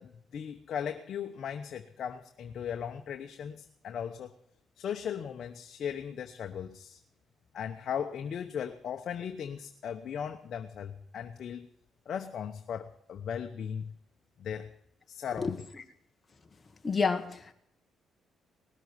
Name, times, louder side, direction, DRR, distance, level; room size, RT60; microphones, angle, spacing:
voice 1, 0.0-4.3 4.8-7.0 7.5-11.7 12.1-13.9 14.4-14.7 15.1-15.7, left 8 dB, 60° left, 5 dB, 1.0 m, -37 dB
voice 2, 16.8-17.5, left 4 dB, 30° left, 5 dB, 1.4 m, -29 dB
19.0 x 7.9 x 9.5 m, 0.73 s
cardioid pair, 90°, 0 cm